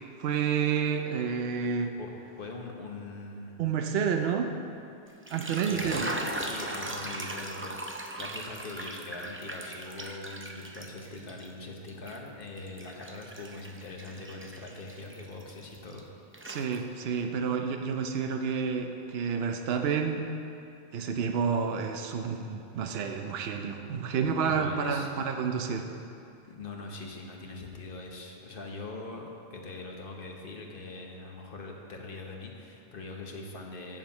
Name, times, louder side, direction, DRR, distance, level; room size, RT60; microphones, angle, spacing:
voice 1, 0.2-1.9 3.6-4.5 5.3-6.0 16.5-20.2 20.9-25.8, right 6 dB, 75° right, 5 dB, 0.9 m, -29 dB
voice 2, 2.4-3.6 5.6-16.1 24.4-25.1 25.8-26.0 26.5-34.0, left 3 dB, 60° left, 1 dB, 1.3 m, -42 dB
sound 1, 5.1-11.5 11.9-16.0 16.3-17.2, right 1 dB, 20° right, 0.4 m, -39 dB
7.4 x 7.4 x 7.2 m, 2.6 s
omnidirectional pair, 1.1 m